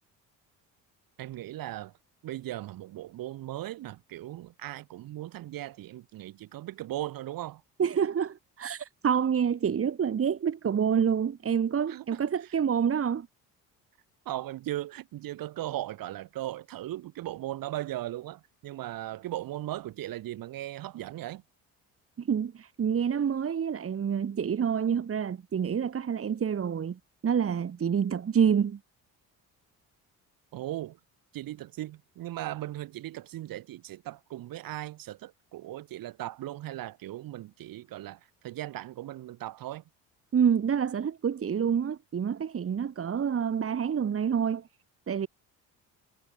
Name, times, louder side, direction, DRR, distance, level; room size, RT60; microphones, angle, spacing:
voice 1, 1.2-1.9 2.2-7.6 11.9-12.5 14.2-21.4 30.5-31.0 31.3-39.8, right 14 dB, 70° right, 4.9 m, -38 dB
voice 2, 7.8-13.3 22.2-28.8 40.3-44.7 45.1-45.3, right 7 dB, 40° right, 3.1 m, -27 dB
cardioid pair, 100°, 35 cm